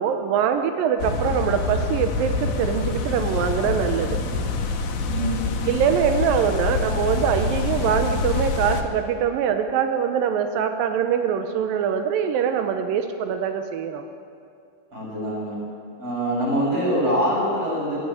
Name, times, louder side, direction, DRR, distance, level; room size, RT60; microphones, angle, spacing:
voice 1, 0.0-4.2 5.6-14.0, right 8 dB, 80° right, 6 dB, 2.0 m, -23 dB
sound 1, 1.0-8.8, left 4 dB, 65° left, 3.0 m, -26 dB
voice 2, 5.0-5.8 14.9-15.6 16.0-18.0, equal, 30° right, -5 dB, 8.2 m, -24 dB
22.0 x 13.0 x 9.8 m, 2.4 s
omnidirectional pair, 5.3 m